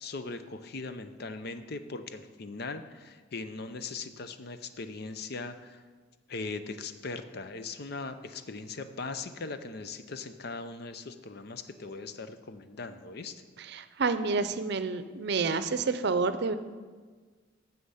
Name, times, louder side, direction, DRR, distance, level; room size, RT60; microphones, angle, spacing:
voice 1, 0.0-5.8 6.3-13.4, left 3 dB, 55° left, 10 dB, 0.6 m, -39 dB
voice 2, 13.6-16.5, right 4 dB, 65° right, 12 dB, 0.6 m, -29 dB
9.7 x 7.1 x 5.6 m, 1.4 s
head